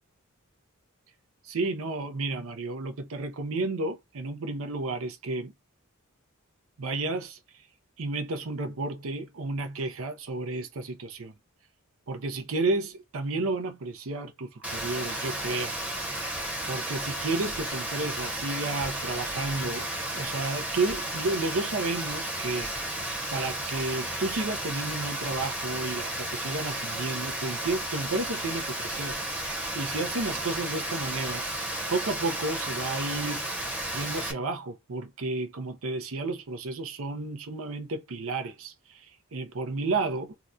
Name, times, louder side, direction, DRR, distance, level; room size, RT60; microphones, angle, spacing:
voice 1, 1.4-5.5 6.8-7.4 8.0-11.3 12.1-16.1 16.7-19.9 20.1-29.2 29.7-31.4 31.9-33.5 33.9-40.3, right 3 dB, 65° right, 0.6 m, -32 dB
Rain, 14.6-34.3, right 1 dB, 5° right, 0.9 m, -33 dB
2.8 x 2.2 x 3.5 m
head